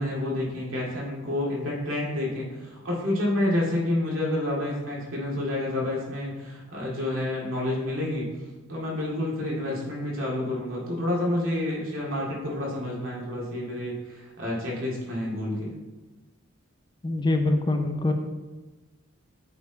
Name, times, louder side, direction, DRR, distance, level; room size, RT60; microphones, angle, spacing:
voice 1, 0.0-8.2 8.7-15.7, left 1 dB, 80° right, -4 dB, 2.2 m, -29 dB
voice 2, 17.0-18.1, left 2 dB, 20° left, 6 dB, 0.5 m, -24 dB
8.2 x 4.6 x 3.9 m, 1.2 s
head